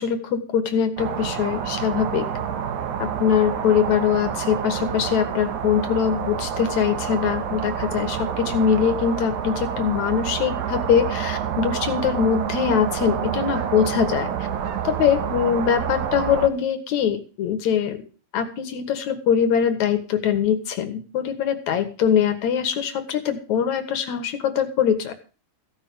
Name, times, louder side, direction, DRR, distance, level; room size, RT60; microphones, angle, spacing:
voice 1, 0.0-2.3 3.0-14.3 14.8-18.0 18.3-25.1, left 8 dB, 75° left, 8 dB, 2.7 m, -22 dB
sound 1, 1.0-16.5, right 8 dB, 85° right, 2.7 m, -28 dB
15.5 x 5.9 x 7.7 m, 0.37 s
omnidirectional pair, 3.3 m